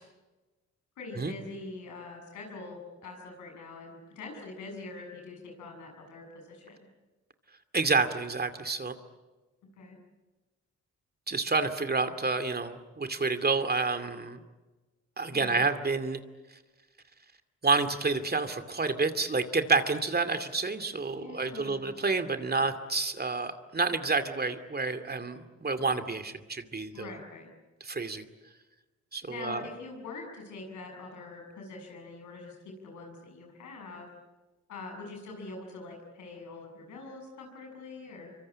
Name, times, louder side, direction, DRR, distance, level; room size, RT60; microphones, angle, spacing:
voice 1, 1.0-6.9 9.6-10.0 15.3-15.6 21.1-21.8 26.9-27.5 29.3-34.1 34.7-38.4, left 3 dB, 85° left, 2 dB, 7.3 m, -44 dB
voice 2, 7.7-8.9 11.3-14.4 15.2-16.2 17.6-27.1 27.8-28.2 29.1-29.6, right 4 dB, 35° right, 9 dB, 2.4 m, -29 dB
25.5 x 24.5 x 8.7 m, 1.2 s
supercardioid pair, 55°, 29 cm